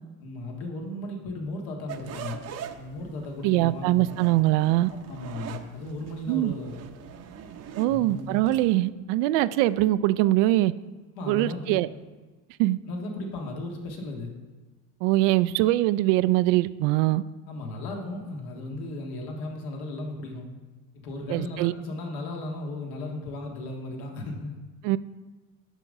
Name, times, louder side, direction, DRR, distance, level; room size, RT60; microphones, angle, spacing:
voice 1, 0.2-2.4 2.8-4.1 5.1-6.8 7.9-8.3 11.1-11.8 12.9-14.3 17.5-20.5 20.9-24.5, left 2 dB, 65° left, 1 dB, 1.8 m, -35 dB
sound 1, 1.9-8.8, right 8 dB, 40° right, 0.7 m, -42 dB
voice 2, 3.4-4.9 6.3-6.5 7.8-10.7 11.3-11.9 12.6-12.8 15.0-17.2 21.3-21.7 24.8-25.0, right 16 dB, 70° right, 15 dB, 0.5 m, -22 dB
10.0 x 3.8 x 5.3 m, 1.3 s
supercardioid pair, 100°, 39 cm